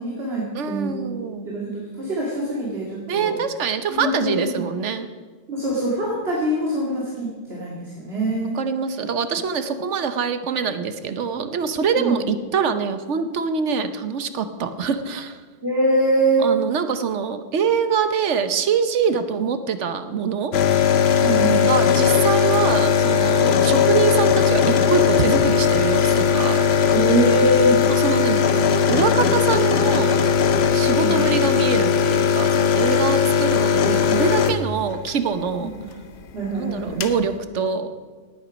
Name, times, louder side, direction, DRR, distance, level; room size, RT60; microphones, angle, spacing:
voice 1, 0.0-1.0 1.4-3.4 3.9-4.6 5.5-8.5 12.0-12.2 15.6-16.5 21.2-21.7 26.9-27.8 31.0-31.2 35.6-35.7 36.3-37.0, right 1 dB, 55° right, -5 dB, 2.5 m, -23 dB
voice 2, 0.5-1.5 3.1-5.1 8.5-15.4 16.4-20.5 21.6-26.9 27.9-30.2 30.7-35.7 36.6-37.9, right 6 dB, 75° right, 10 dB, 1.1 m, -24 dB
sound 1, 20.5-35.2 36.5-36.6 36.7-37.2, left 7 dB, 60° left, 1.0 m, -18 dB
18.0 x 8.8 x 5.1 m, 1.5 s
omnidirectional pair, 1.2 m